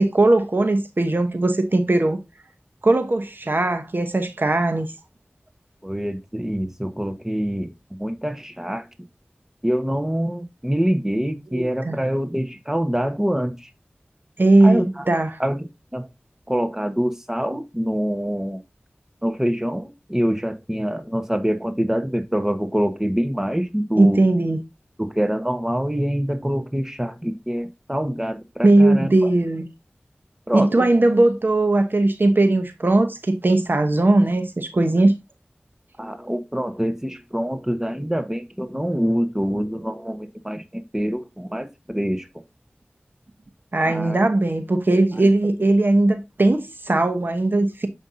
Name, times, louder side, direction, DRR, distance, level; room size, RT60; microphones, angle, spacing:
voice 1, 0.0-2.2 2.8-4.9 11.5-12.0 14.4-15.4 24.0-24.6 28.6-29.7 30.5-35.1 43.7-47.9, right 2 dB, 60° right, 0.9 m, -19 dB
voice 2, 5.8-7.7 8.0-8.9 9.6-13.7 14.6-15.0 15.4-16.1 16.5-18.6 19.2-24.2 25.0-29.3 30.5-30.8 36.0-42.3 43.8-44.2 45.2-45.3, equal, 10° right, 1.1 m, -25 dB
7.2 x 5.3 x 2.6 m
wide cardioid pair, 45°, 4 cm